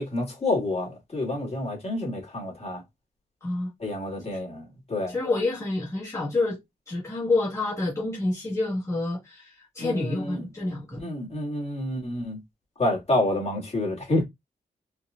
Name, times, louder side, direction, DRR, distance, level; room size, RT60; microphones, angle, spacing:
voice 1, 0.0-2.8 3.8-5.2 9.8-10.5 11.0-12.4 12.8-14.2, left 1 dB, 40° left, 1.9 m, -28 dB
voice 2, 5.1-6.6 6.9-11.0, left 2 dB, 15° left, 1.6 m, -28 dB
4.5 x 2.3 x 2.4 m
wide cardioid pair, 105°, 17 cm